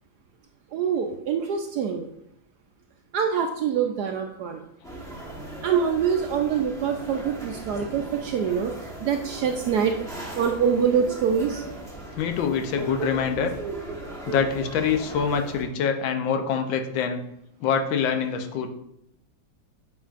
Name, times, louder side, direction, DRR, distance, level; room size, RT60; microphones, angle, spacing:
voice 1, 0.7-2.1 3.1-4.6 5.6-10.0 10.4-11.6, right 7 dB, 75° right, 4 dB, 0.9 m, -25 dB
sound 1, 4.8-15.6, right 2 dB, 5° left, 0.7 m, -37 dB
voice 2, 12.2-13.5 14.3-17.2 17.6-18.7, left 6 dB, 80° left, 6 dB, 1.5 m, -25 dB
8.5 x 5.8 x 2.5 m, 0.79 s
omnidirectional pair, 2.1 m